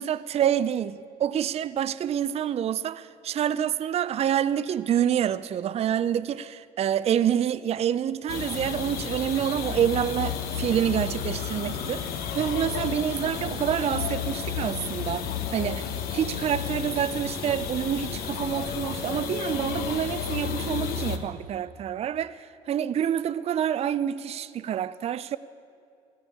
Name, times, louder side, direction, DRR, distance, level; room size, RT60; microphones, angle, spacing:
voice 1, 0.0-25.4, right 9 dB, 40° right, 0.4 m, -27 dB
sound 1, 8.3-21.2, left 7 dB, 70° left, 1.1 m, -32 dB
15.0 x 6.8 x 8.8 m
supercardioid pair, 75°, 16 cm